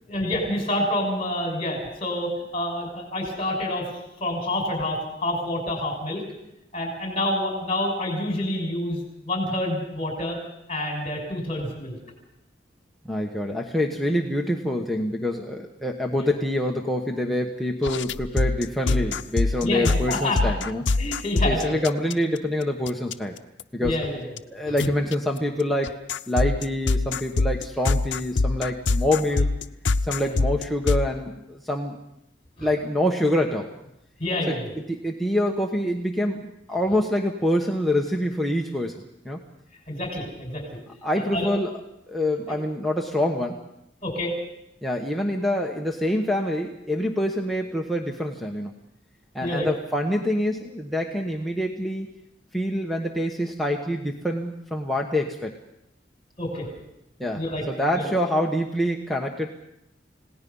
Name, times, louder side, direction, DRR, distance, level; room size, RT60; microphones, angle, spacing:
voice 1, 0.1-3.9 4.2-6.2 6.7-10.4 10.7-12.0 16.1-16.3 18.8-19.0 19.6-20.4 21.0-21.8 23.8-24.3 24.6-24.8 30.2-30.3 32.6-32.7 34.2-34.7 39.9-40.8 41.1-41.5 44.0-44.3 49.4-49.7 56.4-56.7 57.3-57.6 57.9-58.1, left 1 dB, 35° left, 2 dB, 6.2 m, -28 dB
voice 2, 13.0-20.9 21.4-23.3 23.7-24.0 24.5-25.9 26.3-29.5 30.0-32.0 32.6-33.7 34.5-34.6 34.9-38.9 39.2-39.4 41.0-41.8 42.1-43.6 44.8-48.7 49.3-52.1 52.5-55.5 57.2-59.5, left 1 dB, ahead, 0 dB, 1.2 m, -26 dB
sound 1, 17.8-22.4 22.9-23.1 23.6-24.1 24.4-24.5 24.8-25.1 25.8-31.1, left 3 dB, 75° left, 0.7 m, -24 dB
30.0 x 18.0 x 5.5 m, 0.82 s
head